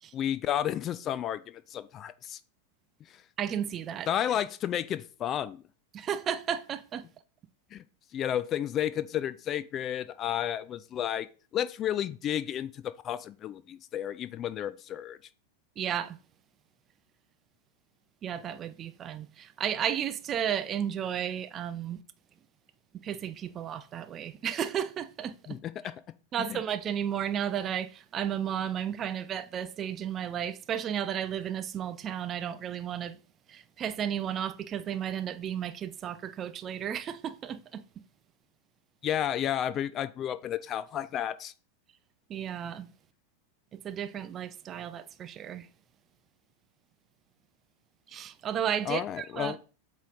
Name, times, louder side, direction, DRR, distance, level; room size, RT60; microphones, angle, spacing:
voice 1, 0.1-2.4 3.1-3.2 4.1-5.6 7.7-7.8 8.1-11.3 11.5-15.2 25.5-25.7 26.4-26.6 39.0-41.5 48.9-49.6, left 10 dB, 30° left, 0.3 m, -32 dB
voice 2, 3.4-4.4 5.9-7.1 15.8-16.2 18.2-22.0 22.9-25.6 26.3-33.2 33.5-37.8 42.3-42.9 43.7-45.7 48.1-49.6, right 9 dB, 30° right, 0.5 m, -33 dB
8.1 x 3.2 x 3.9 m
figure-of-eight pair, 90°, 0 cm